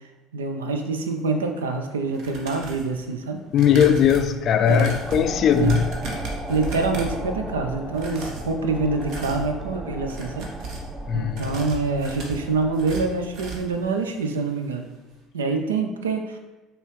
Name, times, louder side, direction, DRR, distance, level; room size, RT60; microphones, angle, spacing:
voice 1, 0.3-3.4 4.7-5.8 6.5-10.5 11.1-14.9 15.3-16.4, right 3 dB, 85° right, 0.4 m, -26 dB
sound 1, 2.1-2.9 3.5-7.3 7.9-8.5 8.9-9.5 10.0-10.9 11.3-13.8 14.1-14.3 14.6-14.7, right 3 dB, 60° right, 0.8 m, -36 dB
voice 2, 3.5-5.9 11.1-11.4, left 8 dB, 50° left, 0.3 m, -19 dB
sound 2, 4.3-13.5, right 1 dB, ahead, 0.6 m, -36 dB
5.2 x 2.9 x 3.2 m
hypercardioid pair, 65°, 0 cm